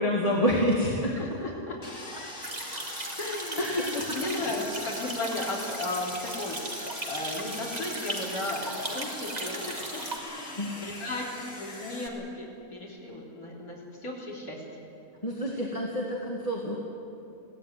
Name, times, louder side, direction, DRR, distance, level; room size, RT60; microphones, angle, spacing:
voice 1, 0.0-1.1 3.6-4.2 10.6-10.7 15.2-16.8, left 1 dB, 25° left, -3 dB, 2.3 m, -27 dB
voice 2, 1.1-1.8 2.1-2.2 2.7-2.8 3.2-14.6 15.5-15.7, left 2 dB, 75° left, -4 dB, 4.0 m, -35 dB
Sawing, 1.8-12.1, left 2 dB, 50° left, 2.9 m, -42 dB
sound 1, 2.4-10.2, right 1 dB, 25° right, 2.5 m, -37 dB
22.0 x 17.0 x 9.5 m, 2.6 s
omnidirectional pair, 1.5 m